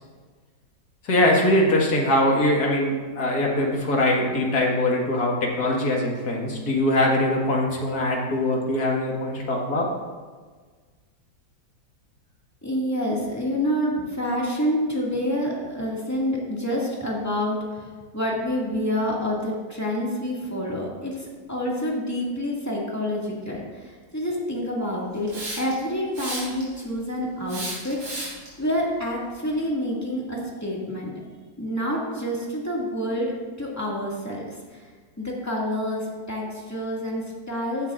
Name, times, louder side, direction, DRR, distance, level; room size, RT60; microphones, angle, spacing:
voice 1, 1.0-9.9, left 1 dB, 55° left, -1 dB, 2.3 m, -22 dB
voice 2, 12.6-28.1 28.6-31.1 31.6-34.8 35.2-37.9, equal, 10° left, -4 dB, 2.0 m, -28 dB
Hiss, 25.3-25.8 26.1-26.8 27.5-28.5, right 1 dB, 90° right, 4.5 m, -33 dB
15.0 x 10.5 x 2.6 m, 1.5 s
omnidirectional pair, 2.1 m